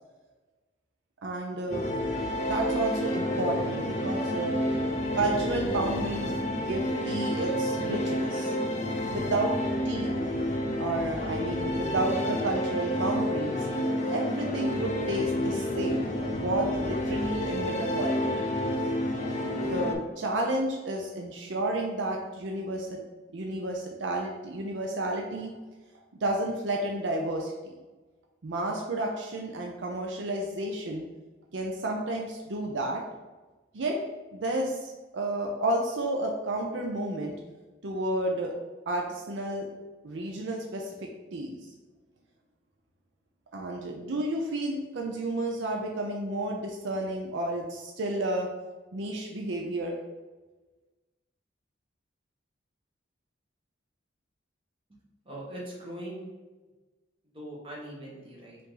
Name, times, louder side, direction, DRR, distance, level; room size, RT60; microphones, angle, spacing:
voice 1, 1.2-1.8 2.4-4.6 5.1-8.5 9.1-9.5 9.8-10.2 10.8-13.7 14.1-18.5 19.6-23.0 23.3-25.5 26.2-27.7 28.4-31.1 31.5-33.0 33.7-34.0 34.3-37.3 37.8-38.5 38.9-39.7 40.0-40.9 41.3-41.6 43.5-48.5 48.9-50.0, right 1 dB, 70° right, 0 dB, 0.5 m, -31 dB
sound 1, 1.7-19.9, left 1 dB, 35° left, 0.5 m, -30 dB
voice 2, 55.2-56.3 57.2-58.6, right 1 dB, 30° right, -4 dB, 1.2 m, -41 dB
5.3 x 2.6 x 3.9 m, 1.2 s
head